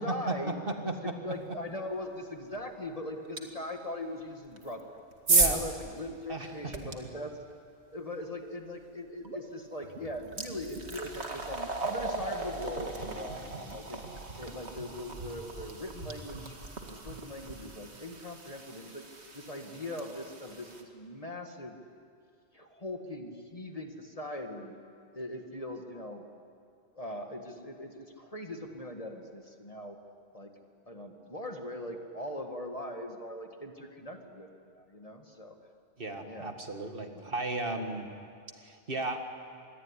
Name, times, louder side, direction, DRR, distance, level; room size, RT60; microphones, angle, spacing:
voice 1, 0.0-0.5 0.8-5.0 5.3-7.4 7.9-14.0 14.4-19.1 19.3-21.8 22.5-24.8 25.1-26.3 26.9-30.0 30.3-30.5 30.9-35.6 36.2-36.5 37.1-37.3, left 1 dB, 35° left, 4 dB, 2.0 m, -40 dB
voice 2, 0.7-1.1 5.3-5.6 6.3-6.7 36.0-38.1 38.6-39.2, right 3 dB, 55° right, 5 dB, 2.1 m, -35 dB
sound 1, 3.4-3.5 4.5-6.9 9.2-9.4 9.8-20.8, right 3 dB, 75° right, 2.5 m, -35 dB
26.5 x 22.0 x 9.9 m, 2.4 s
omnidirectional pair, 1.1 m